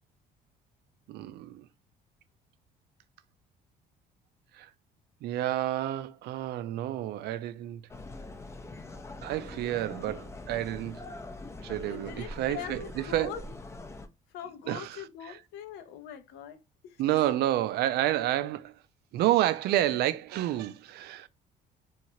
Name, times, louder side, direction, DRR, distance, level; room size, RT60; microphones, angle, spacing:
voice 1, 1.1-1.7 4.5-4.7 5.2-7.8 9.2-11.0 11.6-13.4 14.7-15.4 17.0-18.8 19.1-21.3, right 13 dB, 75° right, 0.4 m, -29 dB
sound 1, 7.9-14.1, left 2 dB, 15° left, 0.4 m, -43 dB
voice 2, 11.9-13.4 14.3-17.2, left 9 dB, 85° left, 0.6 m, -43 dB
3.0 x 2.4 x 2.7 m
cardioid pair, 110°, 17 cm